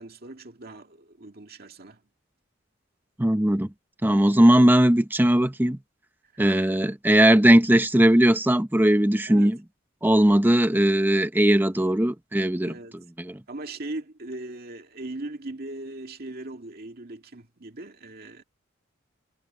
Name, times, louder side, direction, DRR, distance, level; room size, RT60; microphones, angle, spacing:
voice 1, 0.0-2.0 6.3-6.8 9.3-9.6 12.6-13.1 13.5-18.4, right 2 dB, 50° right, 2.3 m, -39 dB
voice 2, 3.2-3.7 4.0-5.8 6.4-9.6 10.0-12.7 13.2-13.4, right 1 dB, 10° right, 0.9 m, -19 dB
head